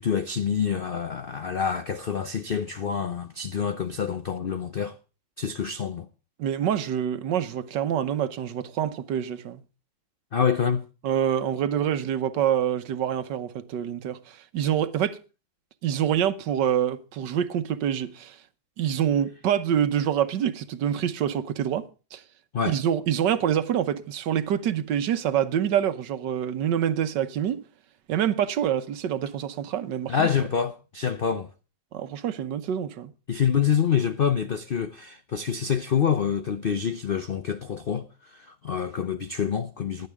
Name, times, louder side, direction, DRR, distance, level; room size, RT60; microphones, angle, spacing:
voice 1, 0.0-5.0 5.4-6.1 10.3-10.8 22.5-22.8 30.1-31.5 33.3-40.1, left 7 dB, 90° left, 0.4 m, -26 dB
voice 2, 6.4-9.6 11.0-15.2 15.8-18.4 18.8-22.2 22.7-27.6 28.1-30.3 31.9-33.1, right 9 dB, 75° right, 1.5 m, -26 dB
16.0 x 11.0 x 3.5 m
omnidirectional pair, 2.0 m